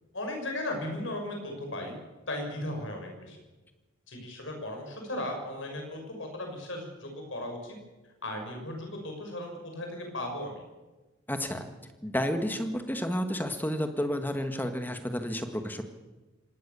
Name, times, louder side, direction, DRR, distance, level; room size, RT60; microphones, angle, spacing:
voice 1, 0.1-2.0 2.3-3.4 4.1-7.8 8.2-10.6, left 1 dB, 65° left, 3 dB, 6.4 m, -36 dB
voice 2, 11.3-11.7 12.0-15.8, equal, 10° left, 7 dB, 1.7 m, -31 dB
25.0 x 18.5 x 7.1 m, 1.2 s
head